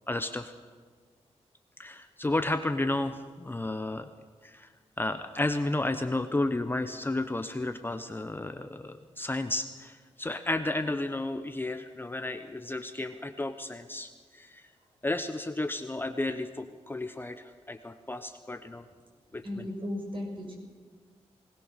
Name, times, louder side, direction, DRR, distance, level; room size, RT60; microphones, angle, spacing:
voice 1, 0.1-0.5 1.8-4.1 4.4-4.7 5.0-14.6 15.0-18.8 19.3-19.7, left 2 dB, 20° left, 8 dB, 0.9 m, -32 dB
voice 2, 19.4-20.6, left 1 dB, 45° right, 0 dB, 6.6 m, -35 dB
20.5 x 19.0 x 6.6 m, 1.5 s
wide cardioid pair, 115°, 12 cm